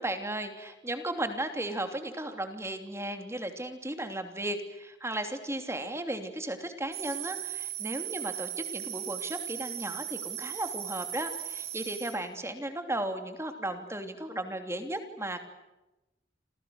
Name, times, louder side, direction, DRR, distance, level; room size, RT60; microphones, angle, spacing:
voice 1, 0.0-15.4, right 1 dB, 15° right, 7 dB, 2.9 m, -35 dB
sound 1, 6.9-12.1, right 11 dB, 55° right, 7.9 m, -37 dB
29.5 x 27.5 x 6.4 m, 0.98 s
head